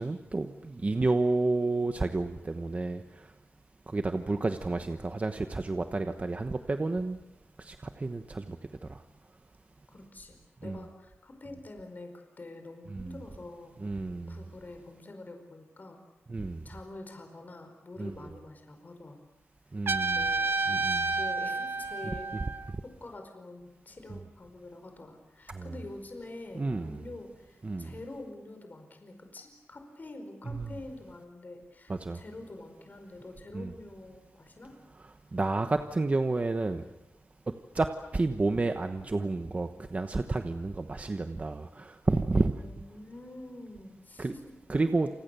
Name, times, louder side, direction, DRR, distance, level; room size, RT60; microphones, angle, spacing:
voice 1, 0.0-3.0 3.9-7.2 7.6-8.6 8.9-9.0 10.6-10.8 12.9-13.2 13.8-14.4 16.3-16.6 18.0-18.1 19.7-20.3 20.7-21.1 22.4-22.5 24.1-24.2 25.5-25.8 26.5-27.0 27.6-27.9 30.4-30.8 31.9-32.2 33.5-33.7 35.3-36.8 37.7-37.9 38.1-42.5 44.2-44.3 44.7-45.1, right 3 dB, 30° right, 7 dB, 1.1 m, -30 dB
voice 2, 9.9-16.1 16.6-19.2 20.0-20.6 21.0-22.3 22.8-34.8 42.5-44.5 44.8-44.9, left 2 dB, 40° left, 5 dB, 4.8 m, -46 dB
Trumpet, 19.9-22.7, right 3 dB, 55° right, 1.2 m, -30 dB
29.0 x 28.0 x 6.9 m, 1.0 s
wide cardioid pair, 145°, 5 cm